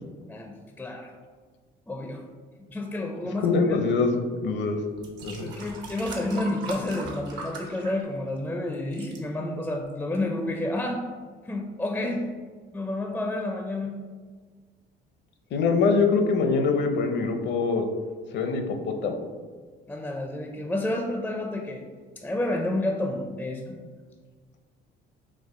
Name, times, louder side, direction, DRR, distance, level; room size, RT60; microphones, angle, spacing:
voice 1, 0.3-1.1 1.9-2.2 2.7-3.9 5.4-11.0 11.4-12.3 12.7-13.9 19.9-21.8 22.2-23.8, left 1 dB, 10° left, 2 dB, 0.4 m, -30 dB
voice 2, 3.4-4.1 4.4-4.8 5.2-5.5 15.5-17.9 18.3-19.2, left 4 dB, 65° left, 5 dB, 0.6 m, -24 dB
sound 1, 4.3-4.5 5.0-8.5 8.7-9.2 9.9-10.0, right 3 dB, 70° right, 0.9 m, -40 dB
4.6 x 2.6 x 3.6 m, 1.5 s
cardioid pair, 100°, 20 cm